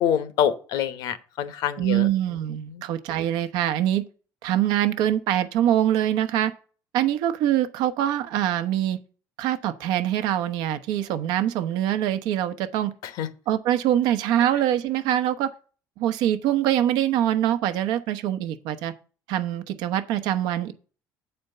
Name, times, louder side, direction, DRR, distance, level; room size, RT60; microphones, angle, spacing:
voice 1, 0.0-2.1 13.2-13.3, left 9 dB, 75° left, 1.0 m, -25 dB
voice 2, 1.8-4.0 4.4-6.5 6.9-9.0 9.4-12.9 13.5-15.5 16.0-18.9 19.3-20.7, right 11 dB, 90° right, 0.9 m, -24 dB
8.2 x 4.4 x 6.6 m
cardioid pair, 140°, 7 cm